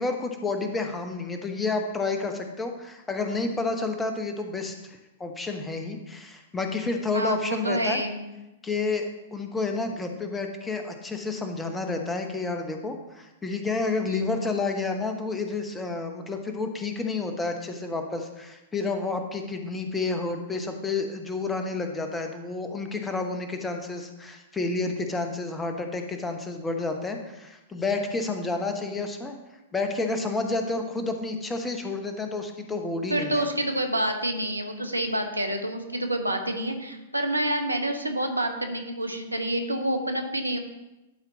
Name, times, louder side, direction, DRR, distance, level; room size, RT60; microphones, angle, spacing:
voice 1, 0.0-8.0 8.6-29.3 29.7-33.4, left 3 dB, 10° left, 5 dB, 0.9 m, -30 dB
voice 2, 7.1-8.2 14.1-14.2 33.1-40.6, right 1 dB, 85° right, 6 dB, 1.0 m, -28 dB
11.5 x 4.5 x 3.9 m, 1.0 s
figure-of-eight pair, 105°, 0 cm